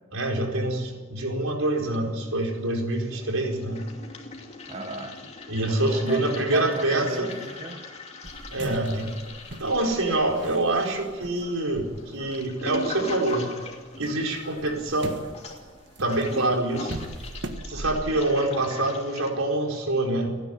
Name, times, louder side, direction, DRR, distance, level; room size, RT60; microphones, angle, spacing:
voice 1, 0.1-3.8 5.5-7.3 8.5-9.1 9.6-13.5 14.0-15.2 16.0-17.0 17.7-20.4, right 2 dB, 80° right, 1 dB, 4.6 m, -26 dB
Toilet flush, 1.7-2.6 2.8-19.3, left 2 dB, 30° left, 2.7 m, -41 dB
voice 2, 4.7-5.3 5.6-7.9 8.6-8.7, right 1 dB, 30° right, 4 dB, 1.2 m, -35 dB
sound 1, 8.2-13.4 13.7-18.1, right 1 dB, 55° right, 1.7 m, -41 dB
29.5 x 10.5 x 9.5 m, 1.4 s
head